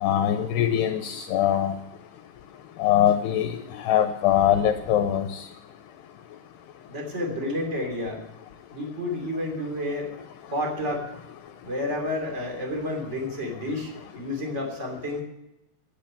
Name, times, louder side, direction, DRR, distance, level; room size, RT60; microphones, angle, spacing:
voice 1, 0.0-1.7 2.8-5.5, left 10 dB, 80° left, 7 dB, 2.5 m, -22 dB
voice 2, 6.9-8.2 8.7-10.1 10.5-11.1 11.6-15.2, left 1 dB, 20° right, 2 dB, 2.5 m, -30 dB
11.5 x 10.0 x 8.8 m, 0.91 s
omnidirectional pair, 5.2 m